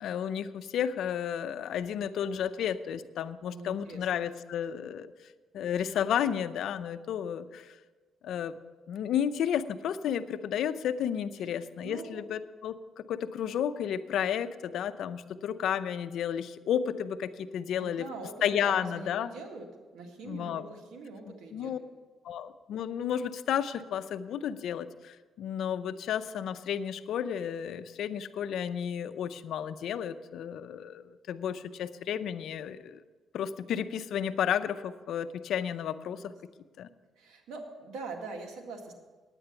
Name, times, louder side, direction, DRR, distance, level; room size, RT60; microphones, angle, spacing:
voice 1, 0.0-5.1 5.5-7.8 8.2-8.6 8.9-18.1 18.4-19.3 20.2-20.6 21.5-21.8 22.2-33.0 33.3-36.3 36.8-36.9, left 9 dB, 75° left, 11 dB, 0.5 m, -32 dB
voice 2, 3.4-4.1 11.4-12.2 17.7-19.7 19.9-21.7 36.1-36.3 37.2-38.9, right 3 dB, 85° right, 2 dB, 1.9 m, -43 dB
9.8 x 8.9 x 7.0 m, 1.3 s
cardioid pair, 90°, 0 cm